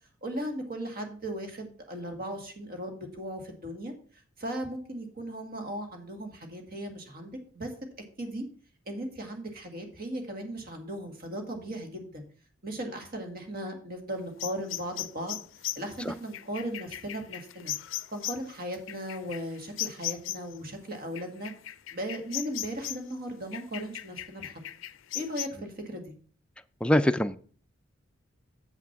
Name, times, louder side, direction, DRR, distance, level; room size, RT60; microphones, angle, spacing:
voice 1, 0.2-3.9 4.4-7.7 8.2-8.4 8.9-12.2 12.6-15.4 15.8-17.7 18.1-21.5 21.9-24.5 25.1-26.1, right 1 dB, 50° right, 4 dB, 1.9 m, -37 dB
sound 1, 14.4-20.6 21.2-23.1 23.5-25.5, left 14 dB, 70° left, 0.4 m, -37 dB
voice 2, 26.8-27.4, left 1 dB, 5° left, 9 dB, 0.4 m, -23 dB
7.4 x 6.1 x 5.8 m, 0.43 s
head